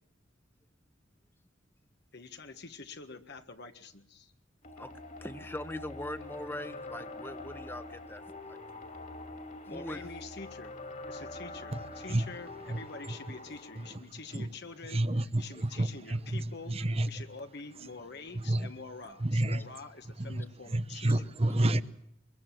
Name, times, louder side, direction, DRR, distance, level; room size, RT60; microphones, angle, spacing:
voice 1, 2.1-4.3 9.7-10.8 11.0-16.8 17.1-21.1, left 4 dB, 60° left, 6 dB, 1.7 m, -46 dB
sound 1, 4.6-14.0, left 2 dB, 45° left, 2.9 m, -45 dB
voice 2, 5.2-8.6 9.6-10.1, left 1 dB, 10° left, 10 dB, 1.1 m, -41 dB
voice 3, 14.9-17.1 18.5-18.7 19.2-19.6 20.2-20.4 20.7-21.8, right 1 dB, 30° right, 14 dB, 0.9 m, -29 dB
23.5 x 22.0 x 7.6 m, 0.73 s
head